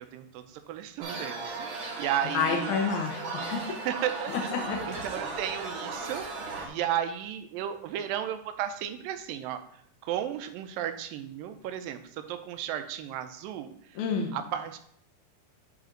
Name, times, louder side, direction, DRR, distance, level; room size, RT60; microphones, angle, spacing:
voice 1, 0.0-2.8 3.9-6.3 6.6-14.0 14.3-14.8, right 10 dB, 85° right, 9 dB, 2.3 m, -34 dB
sound 1, 1.0-6.7, right 3 dB, 55° right, 1.4 m, -36 dB
voice 2, 2.3-3.8 4.3-5.1 14.0-14.3, left 5 dB, 70° left, 0 dB, 2.0 m, -30 dB
11.0 x 4.2 x 3.9 m, 0.64 s
omnidirectional pair, 4.1 m